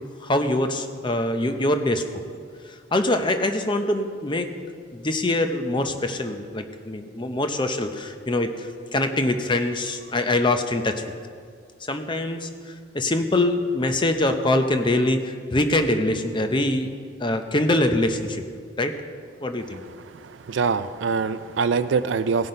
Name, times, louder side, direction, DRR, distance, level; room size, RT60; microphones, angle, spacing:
voice 1, 0.2-2.2 2.9-4.5 4.9-11.1 11.8-16.9 17.2-18.4 18.8-18.9 19.4-19.8, left 1 dB, 25° left, 7 dB, 0.6 m, -24 dB
voice 2, 20.2-22.5, right 5 dB, 65° right, 12 dB, 0.4 m, -24 dB
17.0 x 5.9 x 5.3 m, 2.1 s
head